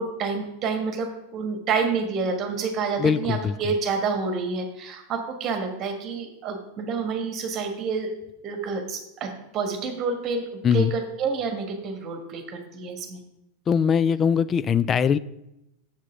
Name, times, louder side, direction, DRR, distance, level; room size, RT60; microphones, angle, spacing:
voice 1, 0.0-8.1 8.4-10.4 10.7-13.2, right 4 dB, 30° right, 6 dB, 1.6 m, -28 dB
voice 2, 3.0-3.5 10.6-10.9 13.7-15.2, left 7 dB, 25° left, 16 dB, 0.3 m, -21 dB
7.4 x 7.2 x 5.0 m, 0.88 s
figure-of-eight pair, 90°, 0 cm